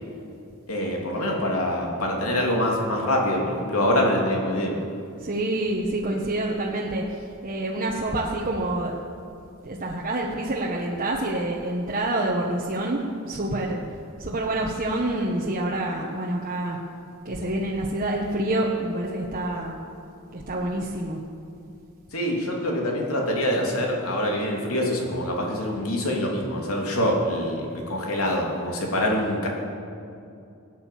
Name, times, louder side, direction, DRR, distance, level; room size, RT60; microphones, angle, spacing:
voice 1, 0.7-4.8 22.1-29.5, left 1 dB, 80° left, -1 dB, 3.0 m, -25 dB
voice 2, 5.2-9.0 9.6-13.0 13.3-13.8 14.2-16.8 17.2-19.7 20.3-21.2, right 1 dB, 40° right, -3 dB, 1.4 m, -27 dB
18.0 x 9.3 x 7.7 m, 2.6 s
head